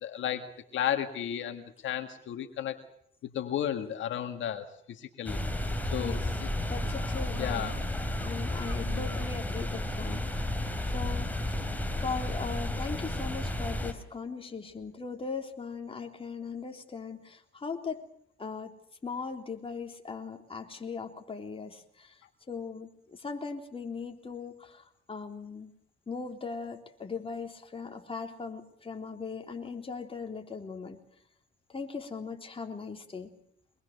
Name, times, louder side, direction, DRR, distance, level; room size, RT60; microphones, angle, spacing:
voice 1, 0.0-2.8 3.2-5.4 5.9-6.5 7.4-7.8 8.8-9.1, left 10 dB, 75° left, 7 dB, 1.9 m, -34 dB
sound 1, 5.2-13.9, left 1 dB, 10° left, 3.7 m, -32 dB
voice 2, 6.0-6.4 6.7-7.7 8.2-11.3 12.0-18.0 18.4-18.7 19.0-22.2 22.5-25.7 26.1-31.0 31.7-33.3, left 5 dB, 25° left, 3 dB, 3.7 m, -39 dB
24.0 x 20.5 x 6.7 m, 0.70 s
cardioid pair, 90°, 20 cm